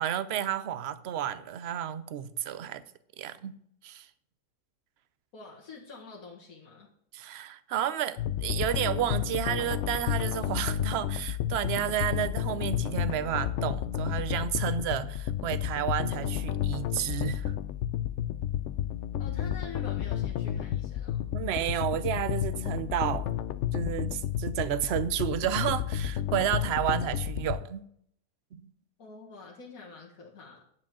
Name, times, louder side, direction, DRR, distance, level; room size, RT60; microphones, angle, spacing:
voice 1, 0.0-2.8 3.2-3.5 3.8-4.1 7.1-17.5 21.3-23.3 23.7-27.8 28.5-28.6, right 10 dB, 60° right, 14 dB, 0.8 m, -31 dB
voice 2, 5.3-6.9 19.2-21.2 29.0-30.6, left 4 dB, 85° left, -2 dB, 2.0 m, -46 dB
sound 1, 8.2-27.6, left 11 dB, 65° left, 0.8 m, -31 dB
9.7 x 4.9 x 7.3 m, 0.68 s
omnidirectional pair, 1.5 m